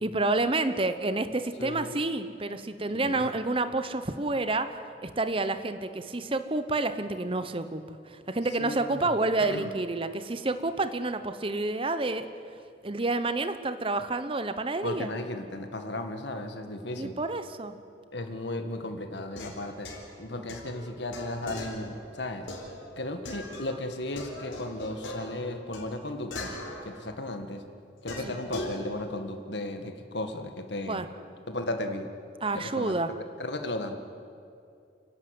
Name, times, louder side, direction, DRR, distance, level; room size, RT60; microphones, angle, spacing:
voice 1, 0.0-4.8 5.0-12.3 12.8-15.1 16.9-17.8 20.3-20.5 28.2-28.3 30.9-31.1 32.4-33.1, right 2 dB, 30° right, 10 dB, 0.8 m, -29 dB
voice 2, 1.6-2.0 2.9-3.3 8.6-9.7 14.8-17.2 18.1-19.9 20.2-22.5 23.0-26.5 26.8-27.6 28.0-31.0 31.5-32.1 32.5-33.0 33.4-34.1, left 1 dB, 65° left, 6 dB, 1.9 m, -35 dB
sound 1, 19.2-23.8 24.2-27.4 28.1-28.8, left 1 dB, 90° left, 4.6 m, -41 dB
29.5 x 11.5 x 9.5 m, 2.5 s
head